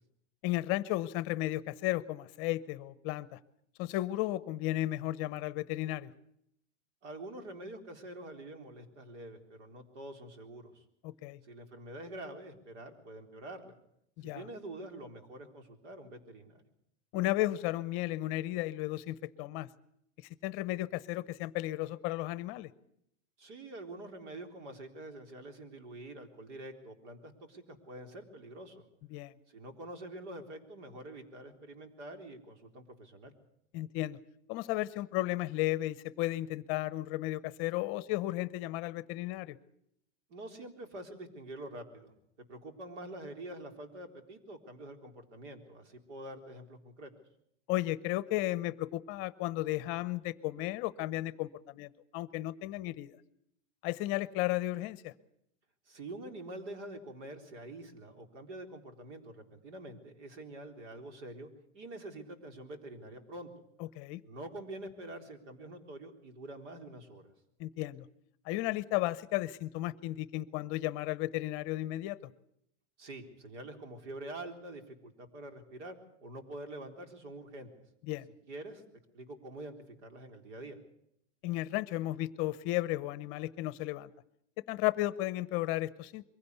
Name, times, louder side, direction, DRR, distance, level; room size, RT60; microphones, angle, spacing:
voice 1, 0.4-3.4 3.8-6.1 11.0-11.4 14.2-14.4 17.1-19.7 20.4-22.7 29.1-29.3 33.7-34.2 34.5-39.6 47.7-53.1 53.8-55.1 63.8-64.2 67.6-68.1 68.4-72.2 78.1-78.3 81.4-84.1 84.7-86.2, left 16 dB, 35° left, 17 dB, 0.8 m, -34 dB
voice 2, 7.0-10.8 11.4-13.8 14.3-16.6 23.4-28.8 29.5-33.3 40.3-42.1 42.5-47.1 55.9-63.5 64.2-67.3 73.0-77.7 78.5-78.8 79.1-79.7 80.0-80.8, right 1 dB, 70° right, 6 dB, 4.0 m, -46 dB
23.0 x 16.0 x 8.2 m, 0.76 s
supercardioid pair, 150°, 36 cm